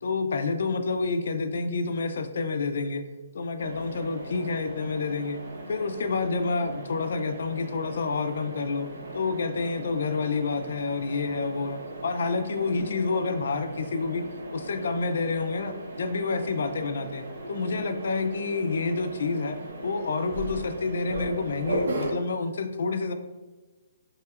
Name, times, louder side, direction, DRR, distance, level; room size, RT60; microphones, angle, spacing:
voice 1, 0.0-3.0 3.3-5.4 5.7-8.9 9.1-14.2 14.5-19.6 19.8-23.1, left 4 dB, 60° left, 8 dB, 0.4 m, -28 dB
Mechanisms, 3.6-22.1, right 1 dB, 75° right, 0.8 m, -38 dB
5.6 x 2.9 x 2.4 m, 1.2 s
hypercardioid pair, 175°, 0 cm